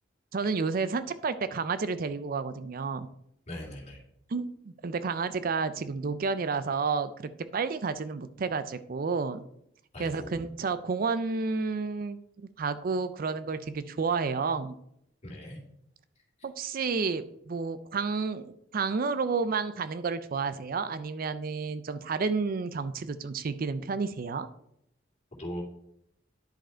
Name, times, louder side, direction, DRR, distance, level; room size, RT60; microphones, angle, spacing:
voice 1, 0.3-3.1 4.3-9.5 10.0-12.2 12.6-14.7 16.4-24.5, right 4 dB, 50° right, 13 dB, 0.4 m, -31 dB
voice 2, 3.5-4.0 9.9-10.5 15.2-15.6 25.4-25.6, equal, 35° left, -1 dB, 2.5 m, -39 dB
10.5 x 5.1 x 4.4 m, 0.74 s
head